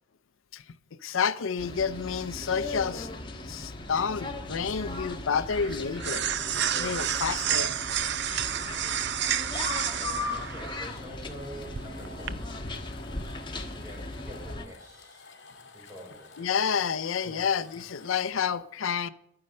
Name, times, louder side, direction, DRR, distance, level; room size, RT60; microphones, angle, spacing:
voice 1, 1.0-3.1 3.5-6.3 6.7-7.8 16.4-19.1, left 6 dB, 80° left, 0.6 m, -29 dB
sound 1, 1.6-14.7, left 2 dB, 25° left, 1.4 m, -38 dB
sound 2, 3.8-12.3, right 9 dB, 60° right, 0.6 m, -31 dB
voice 2, 9.8-12.5 13.5-15.4 15.7-16.6 17.2-17.4, equal, 15° right, 4.3 m, -46 dB
sound 3, 10.3-18.3, left 4 dB, 60° left, 2.2 m, -52 dB
12.5 x 9.6 x 6.5 m
head